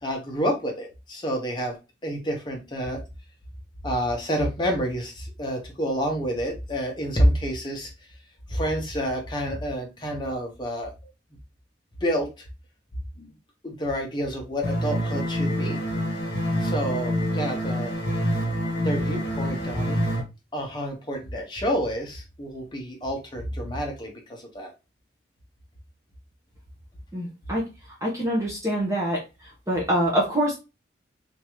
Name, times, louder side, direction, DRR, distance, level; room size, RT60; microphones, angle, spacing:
voice 1, 0.0-1.8 2.0-3.0 3.8-7.9 8.5-10.9 12.0-12.5 13.2-13.3 13.6-15.8 16.6-17.9 18.8-20.0 20.5-24.7, equal, 25° left, 0 dB, 1.0 m, -28 dB
sound 1, 14.6-20.2, equal, 60° left, 1.5 m, -26 dB
voice 2, 27.1-27.7 28.0-29.2 29.7-30.6, equal, 15° right, -3 dB, 0.9 m, -25 dB
3.6 x 2.9 x 3.0 m, 0.26 s
head